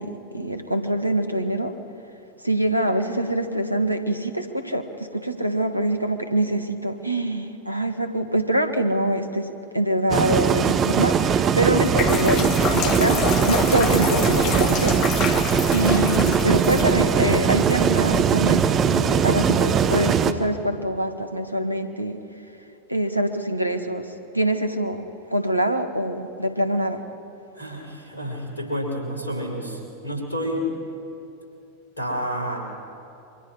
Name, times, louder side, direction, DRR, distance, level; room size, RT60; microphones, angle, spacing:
voice 1, 0.0-1.7 2.4-15.0 15.7-22.2 22.9-27.0, right 1 dB, 90° right, 7 dB, 1.6 m, -25 dB
sound 1, 10.1-20.3, right 7 dB, 30° right, 1.1 m, -20 dB
sound 2, 11.7-18.6, left 6 dB, 40° left, 1.7 m, -28 dB
voice 2, 27.5-30.7 32.0-32.6, equal, 80° left, 0 dB, 5.6 m, -29 dB
27.5 x 24.5 x 4.9 m, 2.7 s
figure-of-eight pair, 90°, 0 cm